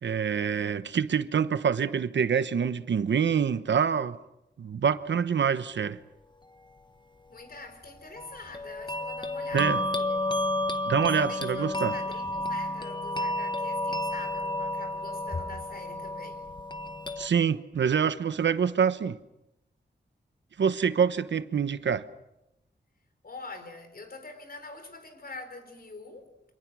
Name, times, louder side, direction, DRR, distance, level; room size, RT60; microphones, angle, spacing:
voice 1, 0.0-4.2 4.6-6.0 9.5-9.8 10.9-11.9 17.2-19.2 20.6-22.0, right 7 dB, 90° right, 1.1 m, -26 dB
voice 2, 7.3-10.5 11.0-16.5 23.2-26.3, left 3 dB, 55° left, 4.5 m, -45 dB
sound 1, 8.2-17.3, left 1 dB, 25° left, 1.3 m, -31 dB
29.0 x 26.0 x 6.3 m
wide cardioid pair, 90°, 18 cm